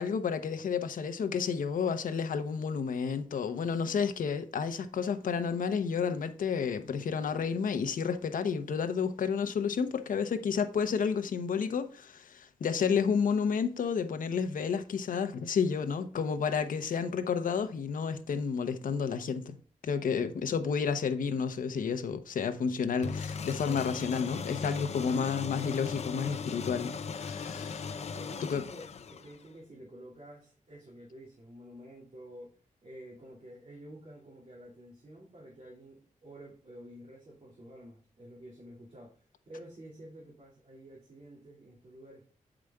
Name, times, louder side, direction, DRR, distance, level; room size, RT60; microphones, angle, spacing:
voice 1, 0.0-19.6 19.8-27.9 28.4-28.6, left 6 dB, 85° left, 0.8 m, -31 dB
sound 1, 23.0-29.6, left 5 dB, 55° left, 0.6 m, -38 dB
voice 2, 28.0-42.3, right 1 dB, 45° right, 2.5 m, -50 dB
7.7 x 5.0 x 3.5 m
wide cardioid pair, 135°, 14 cm